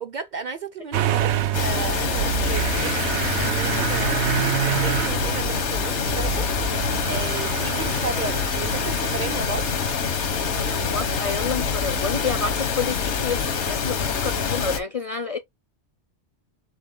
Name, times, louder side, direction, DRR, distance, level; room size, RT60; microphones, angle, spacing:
voice 1, 0.0-2.4 2.7-6.5 7.0-9.7, right 5 dB, 50° right, 0.7 m, -34 dB
Motor vehicle (road) / Engine starting, 0.9-12.6, right 10 dB, 85° right, 0.9 m, -28 dB
sound 1, 1.5-14.8, left 6 dB, 90° left, 1.2 m, -26 dB
voice 2, 10.6-15.4, left 5 dB, 50° left, 0.4 m, -29 dB
4.2 x 3.4 x 3.6 m
omnidirectional pair, 1.1 m